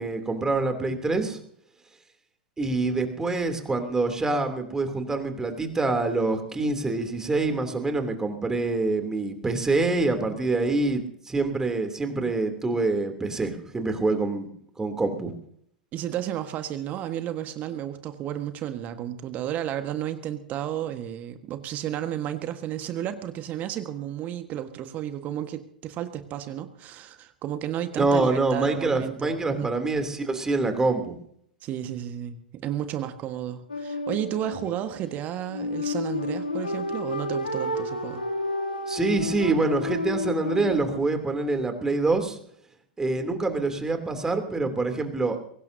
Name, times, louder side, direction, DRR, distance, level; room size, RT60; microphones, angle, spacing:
voice 1, 0.0-1.4 2.6-14.5 14.8-15.3 28.0-31.1 38.9-42.4 43.0-45.4, right 3 dB, 10° right, 6 dB, 3.1 m, -26 dB
voice 2, 15.9-29.7 31.6-38.2, right 11 dB, 35° right, 9 dB, 1.5 m, -32 dB
sound 1, 33.7-41.0, left 2 dB, 80° left, 2.8 m, -31 dB
23.0 x 18.0 x 2.8 m, 0.65 s
figure-of-eight pair, 90°, 5 cm